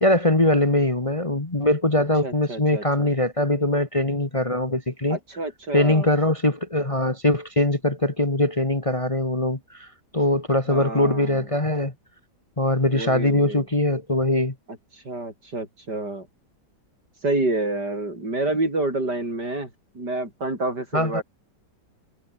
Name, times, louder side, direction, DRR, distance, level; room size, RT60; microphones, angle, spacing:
voice 1, 0.0-5.2 5.7-9.9 10.1-11.9 12.6-14.5 20.9-21.2, left 1 dB, 20° left, 1.9 m, -22 dB
voice 2, 2.2-3.1 5.1-6.1 10.7-11.4 12.9-13.6 15.0-16.3 17.2-19.7 19.9-21.2, right 2 dB, 65° right, 8.1 m, -28 dB
omnidirectional pair, 1.9 m